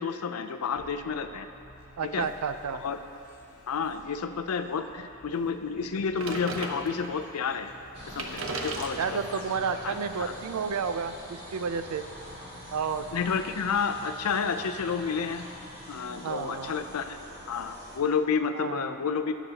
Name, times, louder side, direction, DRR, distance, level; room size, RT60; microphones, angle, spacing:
voice 1, 0.0-1.5 2.1-2.3 2.8-3.0 3.7-9.2 9.8-10.3 13.1-15.5 15.9-17.2 17.5-19.3, left 6 dB, 80° left, 8 dB, 0.5 m, -30 dB
sound 1, 0.7-16.4, left 1 dB, 40° left, 1.1 m, -53 dB
voice 2, 2.0-2.8 9.0-12.1 12.7-13.1 16.2-16.8 18.5-18.9, right 6 dB, 85° right, 10 dB, 0.4 m, -31 dB
sound 2, 6.2-7.3 7.8-7.9 8.1-11.1, right 3 dB, 65° right, 0.8 m, -38 dB
sound 3, 7.9-18.0, equal, 45° right, 2.1 m, -44 dB
17.5 x 7.1 x 2.8 m, 2.9 s
head